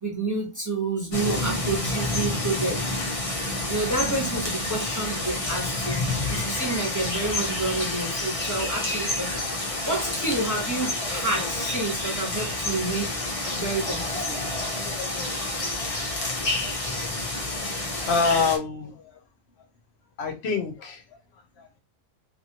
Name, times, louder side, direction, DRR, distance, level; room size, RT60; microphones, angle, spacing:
voice 1, 0.0-2.8 3.7-6.0 6.3-14.4, right 2 dB, 15° right, 0.8 m, -29 dB
sound 1, 1.1-18.6, left 2 dB, 40° left, 0.5 m, -29 dB
voice 2, 18.1-19.2 20.2-21.0 21.6-21.8, left 4 dB, 60° left, 0.8 m, -26 dB
2.9 x 2.5 x 2.8 m
omnidirectional pair, 1.4 m